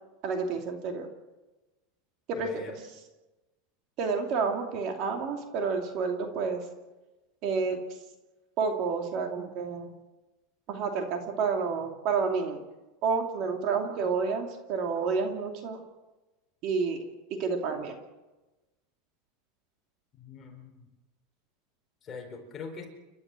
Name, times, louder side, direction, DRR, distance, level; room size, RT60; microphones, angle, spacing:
voice 1, 0.2-1.1 2.3-2.6 4.0-6.6 7.4-7.8 8.6-9.9 10.7-12.6 13.0-15.8 16.6-17.0 17.4-18.0, right 5 dB, 40° right, 4 dB, 2.8 m, -29 dB
voice 2, 2.4-2.7 20.2-20.9 22.0-22.9, left 5 dB, 20° left, 2 dB, 4.3 m, -42 dB
30.0 x 12.5 x 7.7 m, 1.1 s
supercardioid pair, 165°, 0 cm